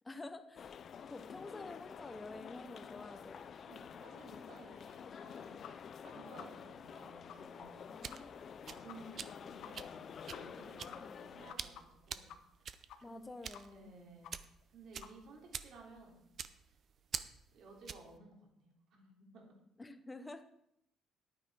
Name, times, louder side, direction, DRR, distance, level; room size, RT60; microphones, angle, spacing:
voice 1, 0.0-0.8 1.1-3.5 7.9-8.4 11.0-11.2 13.0-14.0 19.8-20.4, left 2 dB, 15° left, 10 dB, 0.8 m, -49 dB
sound 1, 0.6-11.5, left 7 dB, 40° left, 0.4 m, -50 dB
voice 2, 3.7-5.6 6.0-8.0 8.6-12.3 12.6-13.2 13.7-14.3 14.7-16.2 16.6-16.7 17.5-19.6, right 3 dB, 60° right, 0 dB, 3.1 m, -56 dB
sound 2, 5.6-5.7 6.0-6.1 6.4-6.5 6.9-7.0 7.3-7.4 7.7-7.8 8.1-8.2 8.5-8.6 8.9-9.0 9.2-9.3 9.6-9.7 10.0-10.1 10.3-10.7 10.9-12.6 12.9-13.2 13.5-13.9 14.2-14.3 14.6-14.7 15.0-15.1, left 10 dB, 70° left, 0.9 m, -52 dB
sound 3, 7.7-18.2, right 7 dB, 40° right, 0.5 m, -47 dB
10.5 x 9.3 x 4.8 m, 0.76 s
cardioid pair, 145°, 0 cm